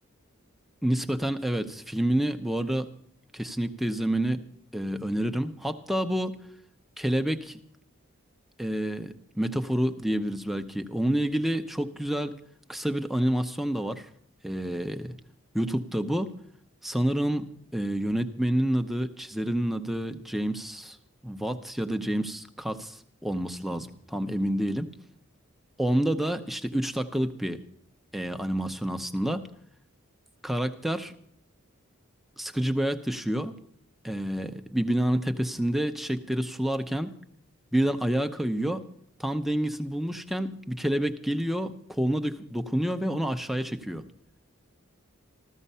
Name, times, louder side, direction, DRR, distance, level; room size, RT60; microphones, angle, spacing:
voice 1, 0.8-2.9 3.3-4.4 4.7-6.4 7.0-7.6 8.6-12.3 12.7-14.1 14.4-15.1 15.5-16.3 16.8-17.5 17.7-21.0 21.2-24.9 25.8-27.6 28.1-29.5 30.4-31.1 32.4-33.5 34.0-37.1 37.7-38.9 39.2-44.0, right 1 dB, ahead, 7 dB, 0.7 m, -28 dB
14.5 x 14.0 x 5.5 m, 0.65 s
head